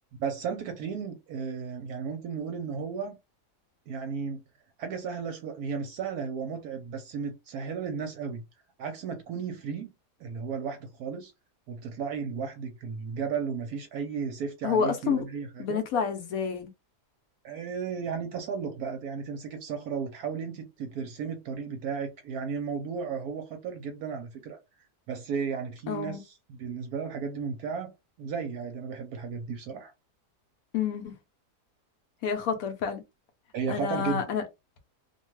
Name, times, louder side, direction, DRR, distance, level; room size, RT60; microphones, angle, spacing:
voice 1, 0.2-3.2 3.9-4.4 4.8-8.4 8.8-9.9 10.2-11.3 11.7-15.8 17.4-24.6 25.1-29.9 33.5-34.2, right 6 dB, 70° right, 1.0 m, -34 dB
voice 2, 14.6-15.2 15.6-16.7 25.9-26.2 30.7-31.1 32.2-33.0 33.7-34.4, left 7 dB, 70° left, 0.9 m, -29 dB
2.6 x 2.2 x 3.0 m
omnidirectional pair, 1.8 m